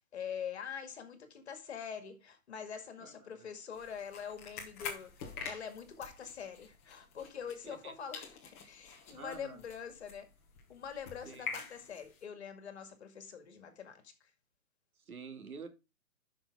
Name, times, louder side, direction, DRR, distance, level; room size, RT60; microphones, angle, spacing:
voice 1, 0.1-10.3 10.7-14.1, left 7 dB, 50° left, 2.1 m, -44 dB
voice 2, 3.0-3.5 7.6-7.9 9.1-9.6 11.2-11.6 15.1-15.7, right 5 dB, 80° right, 2.5 m, -48 dB
sound 1, 3.7-7.9 8.1-12.2, left 5 dB, 10° left, 0.9 m, -47 dB
10.5 x 5.8 x 3.5 m
hypercardioid pair, 175°, 43 cm